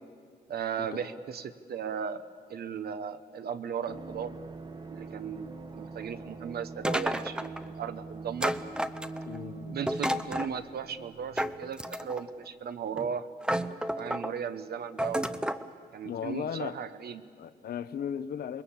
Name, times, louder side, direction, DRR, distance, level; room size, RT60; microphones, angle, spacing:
voice 1, 0.5-2.2 2.5-4.3 4.9-8.5 9.7-13.3 14.0-15.3 15.9-17.2, right 7 dB, 70° right, 1.1 m, -36 dB
sound 1, 3.9-12.4 12.6-12.7, right 3 dB, 25° right, 1.2 m, -44 dB
sound 2, 6.8-7.6 8.4-9.4 9.9-10.5 11.4-12.3 13.0-13.1 13.4-14.3 15.0-15.7, equal, 5° right, 0.6 m, -31 dB
voice 2, 9.3-9.8 16.0-16.8 17.4-18.6, left 8 dB, 70° left, 0.8 m, -36 dB
27.0 x 22.0 x 7.3 m
wide cardioid pair, 160°, 17 cm